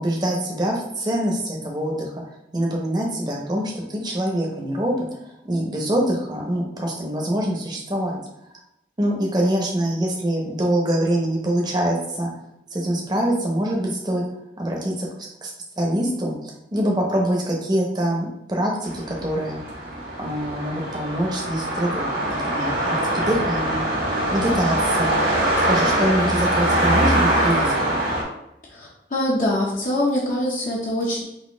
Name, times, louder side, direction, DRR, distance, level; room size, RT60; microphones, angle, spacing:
voice 1, 0.0-2.2 2.5-5.1 5.4-8.2 9.0-12.3 12.7-14.2 14.6-15.1 15.4-15.5 15.8-19.6 20.2-23.8 24.3-25.2 25.7-27.9, right 1 dB, 25° right, -1 dB, 0.8 m, -24 dB
sound 1, 18.8-28.2, right 1 dB, 65° right, 1.4 m, -23 dB
voice 2, 28.7-31.2, left 1 dB, 50° left, -4 dB, 0.7 m, -24 dB
4.1 x 2.6 x 3.7 m, 0.83 s
head